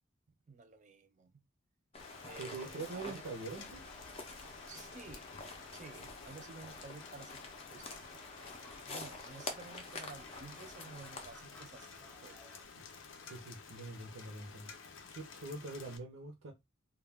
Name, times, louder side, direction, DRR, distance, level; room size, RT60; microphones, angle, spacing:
voice 1, 0.5-1.4 2.2-3.2 4.7-5.3 5.7-7.4 7.7-8.2 8.9-12.4, right 4 dB, 40° right, 0.4 m, -52 dB
sound 1, 1.9-11.3, left 3 dB, 30° left, 0.4 m, -48 dB
Rain, 2.0-16.0, left 5 dB, 75° left, 0.6 m, -53 dB
sound 2, 2.3-12.6, left 1 dB, 10° left, 0.8 m, -61 dB
voice 2, 2.4-3.8 13.2-14.7 15.1-16.5, right 3 dB, 90° right, 0.7 m, -44 dB
2.2 x 2.2 x 3.3 m
head